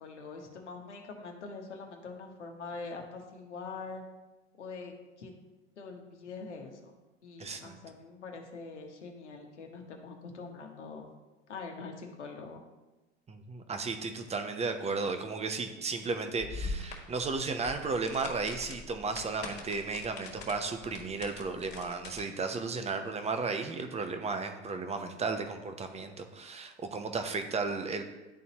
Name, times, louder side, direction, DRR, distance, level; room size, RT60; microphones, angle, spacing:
voice 1, 0.0-4.0 4.6-5.3 5.8-6.9 7.2-11.0 11.5-12.6, left 4 dB, 80° left, 3 dB, 1.2 m, -44 dB
voice 2, 7.4-7.8 13.3-28.0, right 4 dB, 20° right, 7 dB, 0.8 m, -34 dB
sound 1, 16.4-22.2, left 3 dB, 30° left, 1.7 m, -43 dB
11.5 x 4.0 x 2.9 m, 1.1 s
hypercardioid pair, 80°, 34 cm